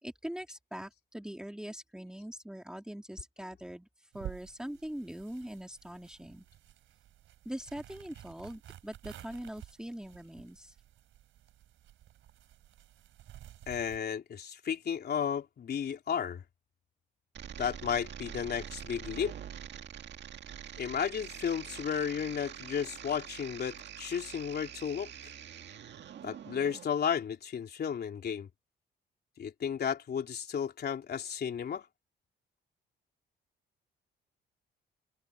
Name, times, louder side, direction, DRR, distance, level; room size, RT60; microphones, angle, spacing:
voice 1, 0.0-6.5 7.4-10.7, equal, 5° right, 2.9 m, -42 dB
sound 1, 4.1-14.0, right 12 dB, 80° right, 4.1 m, -51 dB
voice 2, 13.7-16.4 17.6-19.3 20.8-25.1 26.2-28.5 29.4-31.9, left 7 dB, 55° left, 3.6 m, -33 dB
sound 2, 17.3-26.8, right 9 dB, 60° right, 1.9 m, -45 dB
cardioid pair, 90°, 20 cm